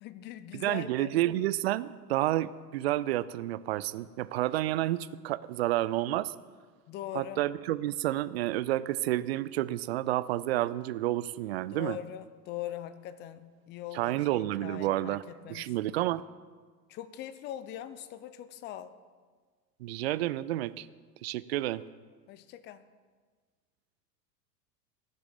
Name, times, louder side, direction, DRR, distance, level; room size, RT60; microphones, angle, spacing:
voice 1, 0.0-1.1 6.9-7.4 11.7-15.7 16.9-18.9 22.3-22.8, left 11 dB, 20° left, 14 dB, 0.5 m, -41 dB
voice 2, 0.5-6.3 7.1-12.0 13.9-15.2 15.5-16.2 19.8-20.9 21.2-21.8, right 15 dB, 40° right, 16 dB, 0.4 m, -30 dB
14.5 x 6.7 x 6.9 m, 1.5 s
figure-of-eight pair, 85°, 49 cm